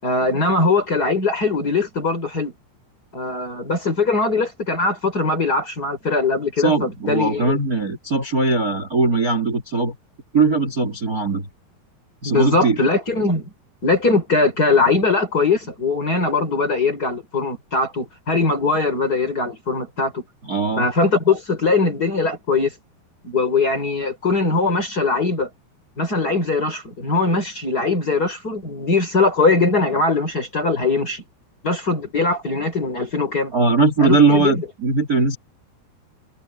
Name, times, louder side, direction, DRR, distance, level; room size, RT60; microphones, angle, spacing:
voice 1, 0.0-2.5 3.1-7.6 10.8-10.9 12.2-13.5 13.8-20.2 20.8-22.7 23.2-25.5 26.0-31.2 31.6-33.5 34.0-34.6, left 3 dB, 20° left, 4.7 m, -21 dB
voice 2, 6.6-9.9 10.3-11.5 12.2-12.8 20.4-20.9 33.5-35.4, right 3 dB, 25° right, 3.1 m, -19 dB
omnidirectional pair, 4.7 m